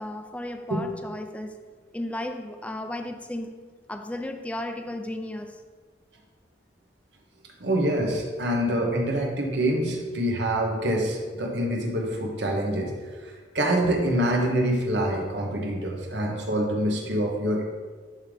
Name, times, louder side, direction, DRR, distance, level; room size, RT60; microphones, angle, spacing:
voice 1, 0.0-1.6 1.9-3.6 3.9-5.6, left 1 dB, 10° left, 6 dB, 0.4 m, -34 dB
voice 2, 7.6-12.9 13.2-17.6, right 1 dB, 80° right, 0 dB, 1.2 m, -26 dB
11.0 x 3.7 x 3.4 m, 1.5 s
head